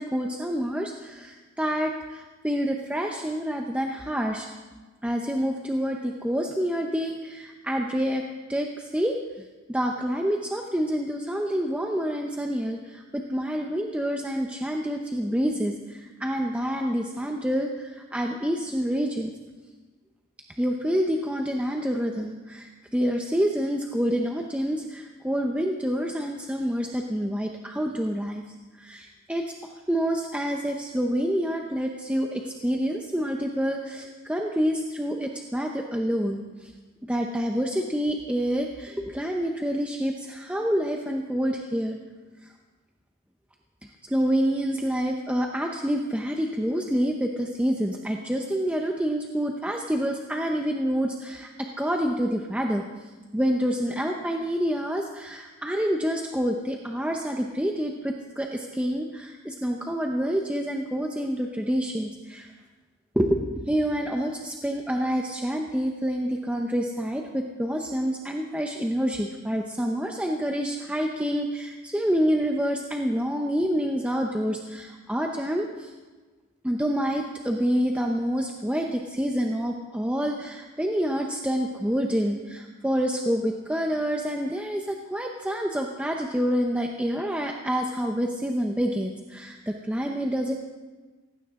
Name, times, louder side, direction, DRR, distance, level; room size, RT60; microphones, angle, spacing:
voice 1, 0.0-4.5 5.0-8.2 8.5-19.3 20.6-36.7 37.1-42.0 42.4-42.5 44.0-62.5 63.2-75.9 76.6-90.5, equal, 5° right, 1 dB, 0.7 m, -27 dB
18.0 x 16.0 x 3.7 m, 1.3 s
head